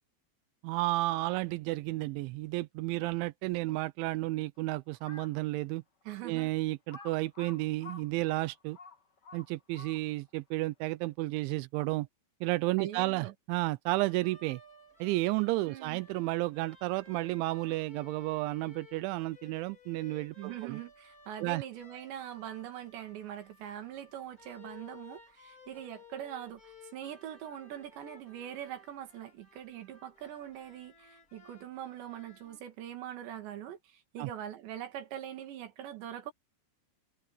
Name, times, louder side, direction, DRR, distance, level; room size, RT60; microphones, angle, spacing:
voice 1, 0.6-5.8 6.2-8.8 9.3-12.1 12.4-14.6 15.0-20.8 21.4-21.6 34.2-34.3, right 20 dB, 90° right, 3.1 m, -32 dB
Crow, 4.9-5.4 6.0-6.1 6.9-10.3, left 4 dB, 35° left, 1.7 m, -50 dB
voice 2, 6.1-6.5 12.8-13.3 15.7-16.0 20.4-36.3, right 11 dB, 75° right, 4.5 m, -42 dB
sound 1, 14.0-32.6, left 4 dB, 20° left, 4.6 m, -57 dB
omnidirectional pair, 5.2 m